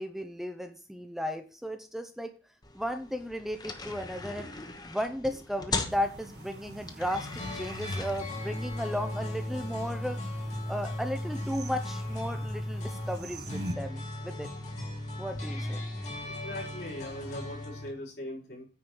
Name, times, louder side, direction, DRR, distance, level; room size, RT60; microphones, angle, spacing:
voice 1, 0.0-2.3 2.7-4.5 4.9-10.2 10.7-14.5 15.2-15.8, equal, ahead, 7 dB, 0.7 m, -35 dB
sound 1, 2.6-17.7, left 3 dB, 25° left, 1.1 m, -43 dB
sound 2, 5.9-13.7, right 1 dB, 70° right, 1.6 m, -44 dB
sound 3, 7.1-17.9, left 1 dB, 40° left, 2.6 m, -37 dB
voice 2, 16.2-18.7, left 1 dB, 70° left, -3 dB, 4.7 m, -40 dB
9.6 x 5.0 x 6.2 m, 0.37 s
head